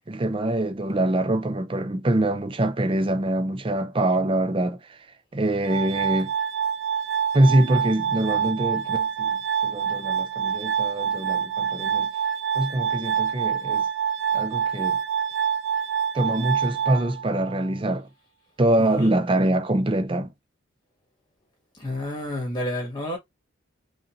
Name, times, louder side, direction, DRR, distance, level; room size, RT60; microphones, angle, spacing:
voice 1, 0.1-5.1 5.3-6.3 7.3-12.1 12.5-13.9 14.3-15.0 16.1-18.1 18.6-20.3, right 1 dB, 25° right, 0.5 m, -24 dB
Glass, 5.7-17.7, right 8 dB, 70° right, 1.0 m, -26 dB
voice 2, 18.8-19.2 21.7-23.2, left 1 dB, 20° left, 1.8 m, -30 dB
5.1 x 2.6 x 2.6 m
head